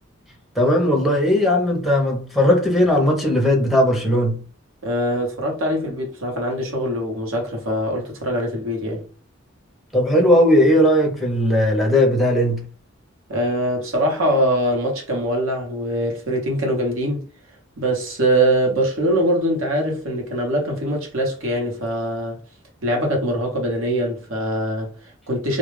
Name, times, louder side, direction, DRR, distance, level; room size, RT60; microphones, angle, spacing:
voice 1, 0.6-4.4 9.9-12.6, left 1 dB, ahead, 0.6 m, -17 dB
voice 2, 4.8-9.1 13.3-17.3 17.8-22.4 22.8-25.6, right 1 dB, 75° right, 0.9 m, -23 dB
2.3 x 2.0 x 3.1 m
head